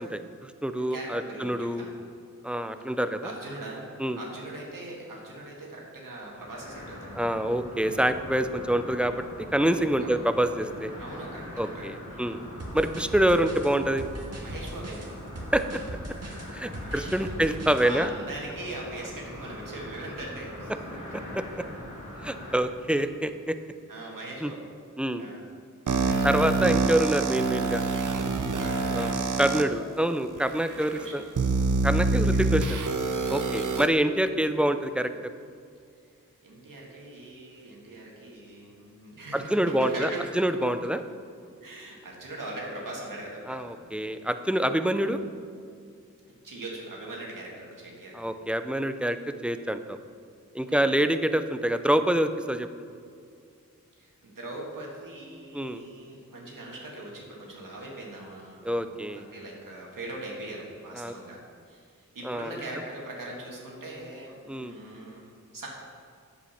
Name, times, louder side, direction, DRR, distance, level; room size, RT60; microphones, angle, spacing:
voice 1, 0.0-1.8 2.4-3.3 4.0-4.2 7.2-9.1 9.5-10.9 11.6-12.4 12.7-14.1 15.5-15.6 16.5-18.1 21.3-21.6 22.2-23.6 24.4-24.5 25.0-25.2 26.2-27.8 28.9-29.1 29.4-31.2 31.8-32.8 33.3-35.3 39.3-40.1 40.4-41.0 43.5-45.2 48.1-49.2 49.4-50.0 50.5-52.7 55.5-55.8 58.6-59.2 60.9-61.1 62.2-62.5 64.5-64.7, right 1 dB, 5° right, 9 dB, 0.6 m, -26 dB
voice 2, 0.8-1.9 3.0-3.9 4.2-7.2 10.0-10.3 11.0-12.3 14.4-15.1 16.8-17.4 17.8-21.1 23.9-24.7 25.2-25.4 26.1-26.2 28.6-29.2 30.8-31.3 32.6-32.8 36.4-40.7 41.6-43.8 46.4-48.3 50.7-51.0 54.0-61.4 61.7-65.3 65.5-65.7, right 2 dB, 90° right, -3 dB, 1.9 m, -41 dB
sound 1, 6.2-22.6, left 1 dB, 65° left, 2.4 m, -42 dB
sound 2, 12.6-17.9, right 1 dB, 50° right, 1.8 m, -39 dB
sound 3, 25.9-29.6 30.4-30.5 31.4-33.9, right 3 dB, 70° right, 0.8 m, -26 dB
8.6 x 7.9 x 5.8 m, 2.3 s
cardioid pair, 50°, 32 cm